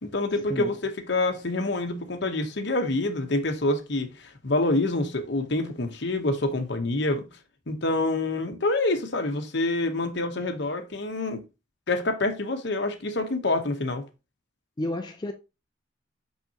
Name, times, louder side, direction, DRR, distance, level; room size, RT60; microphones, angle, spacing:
voice 1, 0.0-7.3 7.7-11.4 11.9-14.0, left 2 dB, 60° left, 1.0 m, -27 dB
voice 2, 14.8-15.3, left 1 dB, 20° left, 0.4 m, -30 dB
5.7 x 5.7 x 2.9 m
head